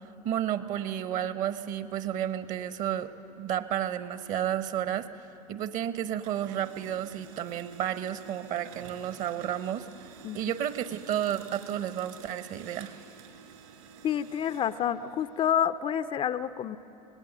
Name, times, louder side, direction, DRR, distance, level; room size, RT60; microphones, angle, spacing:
voice 1, 0.2-3.1 3.4-5.1 5.5-9.9 10.3-12.9, right 10 dB, 40° right, 12 dB, 1.0 m, -31 dB
Printer, 4.6-5.8 6.1-15.7, right 7 dB, 65° right, 3.1 m, -51 dB
voice 2, 14.0-16.8, left 9 dB, 25° left, 12 dB, 0.5 m, -28 dB
25.5 x 19.5 x 7.8 m, 2.8 s
figure-of-eight pair, 85°, 20 cm